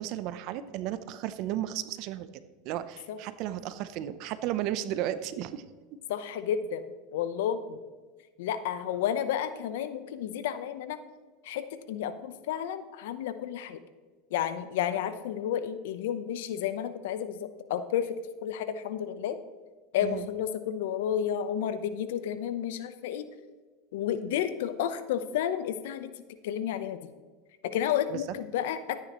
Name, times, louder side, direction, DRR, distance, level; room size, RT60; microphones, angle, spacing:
voice 1, 0.0-5.6 20.0-20.3 28.1-28.2, right 12 dB, 55° right, 13 dB, 0.7 m, -34 dB
voice 2, 6.1-6.8 7.1-7.8 8.4-11.0 11.4-13.8 14.3-18.1 18.4-19.4 19.9-23.2 23.9-26.1 26.4-27.1 27.6-29.0, left 9 dB, 75° left, 11 dB, 0.8 m, -31 dB
12.5 x 9.4 x 3.1 m, 1.4 s
supercardioid pair, 120°, 0 cm